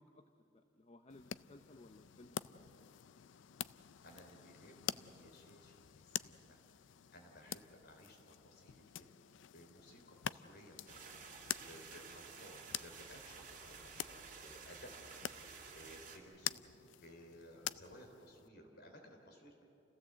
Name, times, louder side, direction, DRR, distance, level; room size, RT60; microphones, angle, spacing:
voice 1, 0.0-2.7 7.4-7.5, left 2 dB, 35° left, 8 dB, 0.7 m, -60 dB
sound 1, 1.1-18.5, left 11 dB, 80° left, 0.4 m, -48 dB
voice 2, 4.0-19.6, equal, 60° left, 3 dB, 3.5 m, -59 dB
sound 2, 10.9-16.2, right 5 dB, 45° right, 2.8 m, -53 dB
28.5 x 16.5 x 7.9 m, 2.9 s
head